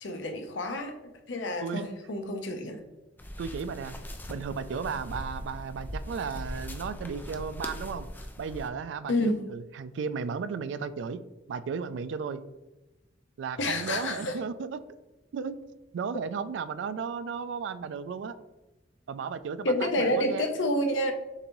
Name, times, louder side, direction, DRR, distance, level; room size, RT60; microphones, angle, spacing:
voice 1, 0.0-2.8 9.1-9.4 13.6-14.4 19.6-21.1, left 1 dB, 75° left, 6 dB, 0.7 m, -29 dB
sound 1, 3.2-8.7, equal, 10° left, 0.4 m, -40 dB
voice 2, 3.4-3.9 4.3-8.1 8.4-11.2 11.5-12.4 13.4-14.8 15.3-15.6 15.9-18.4 19.1-20.5, right 6 dB, 70° right, 14 dB, 0.3 m, -34 dB
6.6 x 2.6 x 3.0 m, 1.0 s
head